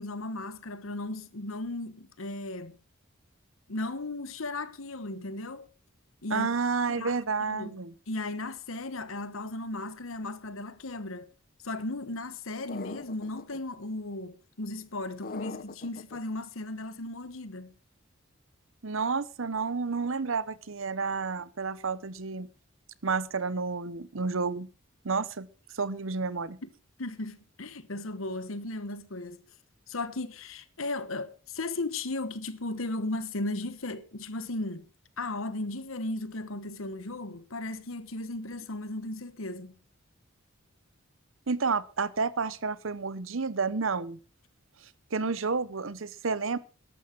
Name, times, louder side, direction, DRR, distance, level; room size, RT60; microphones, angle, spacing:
voice 1, 0.0-2.8 3.7-5.7 6.2-6.5 6.9-7.2 7.5-7.7 8.1-11.3 11.6-17.7 26.6-26.7 27.0-29.4 29.9-34.8 35.2-39.8, left 2 dB, 75° left, 1.3 m, -36 dB
voice 2, 6.3-7.9 18.8-22.5 23.0-24.7 25.0-25.5 25.7-26.6 41.5-44.2 45.1-46.6, right 4 dB, 70° right, 0.9 m, -30 dB
sound 1, 12.7-13.6 15.2-16.2, left 4 dB, 45° left, 0.8 m, -41 dB
13.5 x 12.0 x 4.6 m
head